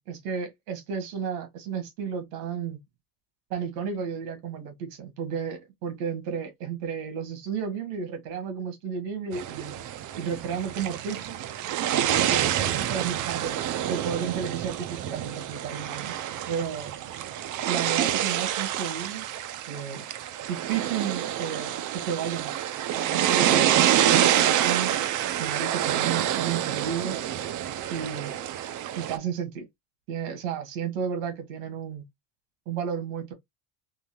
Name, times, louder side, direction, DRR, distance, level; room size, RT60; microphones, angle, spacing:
voice 1, 0.0-2.8 3.5-9.7 10.2-11.4 11.9-13.6 13.9-16.9 17.7-19.3 19.7-20.1 20.5-22.6 22.9-24.9 25.4-27.2 27.9-28.3 28.9-29.7 30.1-32.0 32.7-33.3, right 7 dB, 90° right, 1.5 m, -32 dB
sound 1, 9.3-29.2, right 11 dB, 45° right, 0.5 m, -27 dB
3.8 x 2.7 x 2.8 m
supercardioid pair, 110°, 43 cm